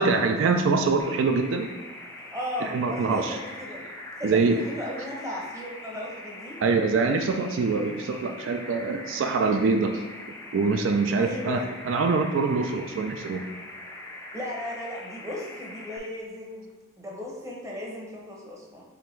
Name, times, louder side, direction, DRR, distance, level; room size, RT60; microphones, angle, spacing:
voice 1, 0.0-1.7 2.6-3.4 4.2-4.6 6.6-10.0 10.5-11.6 11.9-13.5, right 4 dB, 70° right, 5 dB, 0.3 m, -24 dB
sound 1, 1.0-16.0, left 1 dB, 15° left, 0.4 m, -42 dB
voice 2, 2.3-3.8 4.2-6.6 11.2-11.7 14.3-16.7 17.0-18.9, left 1 dB, 15° right, -2 dB, 0.7 m, -36 dB
4.9 x 3.3 x 3.1 m, 1.3 s
head